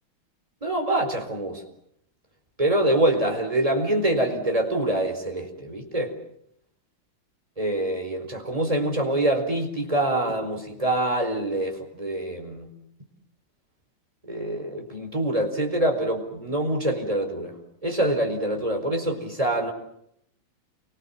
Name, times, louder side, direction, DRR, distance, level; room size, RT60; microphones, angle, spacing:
voice 1, 0.6-1.6 2.6-6.1 7.6-12.7 14.2-17.6 17.8-19.7, right 1 dB, 15° right, 4 dB, 4.7 m, -25 dB
29.5 x 25.0 x 7.4 m, 0.73 s
omnidirectional pair, 2.3 m